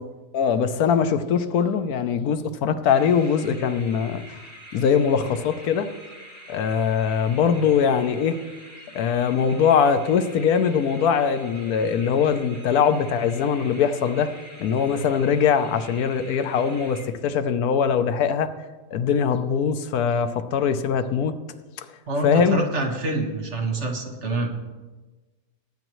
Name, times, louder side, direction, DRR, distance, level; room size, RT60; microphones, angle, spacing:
voice 1, 0.3-4.2 4.7-5.9 6.5-8.4 8.9-14.3 14.6-18.5 18.9-21.3 21.8-21.9 22.2-22.6, left 7 dB, 90° left, 10 dB, 1.2 m, -22 dB
sound 1, 2.9-17.5, equal, 10° left, 2.3 m, -45 dB
voice 2, 22.1-24.5, right 2 dB, 50° right, 2 dB, 1.7 m, -26 dB
18.5 x 9.0 x 3.1 m, 1.2 s
omnidirectional pair, 1.5 m